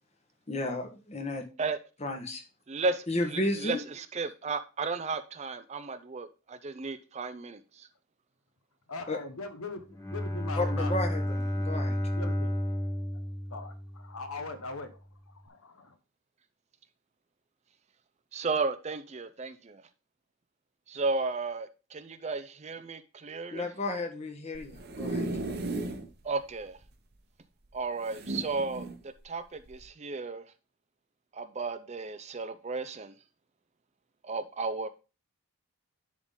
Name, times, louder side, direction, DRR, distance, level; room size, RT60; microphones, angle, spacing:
voice 1, 0.5-1.4 2.0-2.4 3.1-3.8 9.1-9.2 10.5-12.0 23.5-25.3, left 2 dB, 30° left, 1.2 m, -33 dB
voice 2, 2.7-7.9 18.3-19.8 20.9-23.7 26.2-26.8 27.7-30.4 31.3-33.1 34.2-34.9, right 3 dB, 30° right, 0.4 m, -34 dB
voice 3, 8.9-9.8 10.1-10.9 12.1-12.8 13.5-14.9 15.4-15.9, left 3 dB, 75° left, 1.1 m, -40 dB
Bowed string instrument, 9.9-14.4, equal, 15° left, 0.9 m, -32 dB
sound 1, 24.5-26.1 26.5-26.6 26.8-26.9 28.0-29.0 29.7-29.8, right 2 dB, 45° right, 0.9 m, -35 dB
11.0 x 3.7 x 3.7 m
head